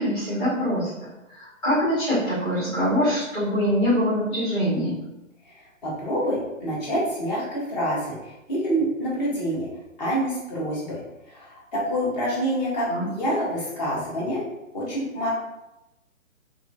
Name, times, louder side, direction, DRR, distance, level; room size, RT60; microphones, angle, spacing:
voice 1, 0.0-5.0 12.9-13.1, equal, 10° left, -13 dB, 0.6 m, -24 dB
voice 2, 5.4-9.7 10.0-11.0 11.3-14.4 14.7-15.3, equal, 30° left, -6 dB, 1.0 m, -27 dB
2.7 x 2.6 x 2.2 m, 0.93 s
hypercardioid pair, 145°, 41 cm